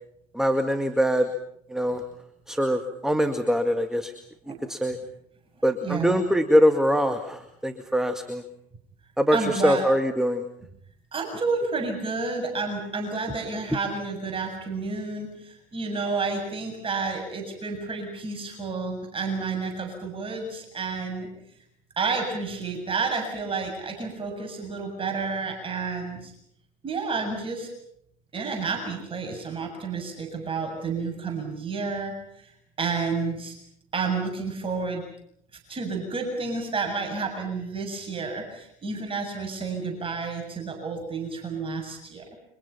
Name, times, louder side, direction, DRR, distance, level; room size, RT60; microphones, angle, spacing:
voice 1, 0.3-1.3 1.7-2.0 2.5-4.1 4.7-5.0 5.6-8.4 9.2-10.4, equal, ahead, 8 dB, 2.1 m, -23 dB
voice 2, 5.8-6.2 9.3-9.8 11.1-21.3 22.0-26.3 26.8-27.7 28.3-32.5 32.8-33.6 33.9-35.0 35.7-42.3, right 4 dB, 30° right, 3 dB, 7.3 m, -30 dB
30.0 x 25.5 x 5.8 m, 0.72 s
hypercardioid pair, 70°, 19 cm